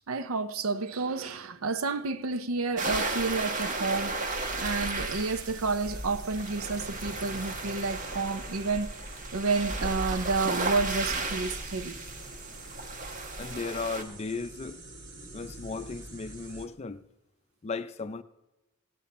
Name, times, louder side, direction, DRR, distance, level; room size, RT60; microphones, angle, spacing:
voice 1, 0.1-9.0 9.3-12.0, right 3 dB, 75° right, 0.6 m, -30 dB
sound 1, 2.8-14.0, right 2 dB, 35° right, 1.0 m, -34 dB
sound 2, 4.3-16.7, right 2 dB, 55° right, 1.9 m, -47 dB
voice 2, 13.4-14.8 15.3-17.0 17.6-18.2, left 4 dB, 30° left, 0.4 m, -36 dB
17.0 x 8.5 x 4.1 m
head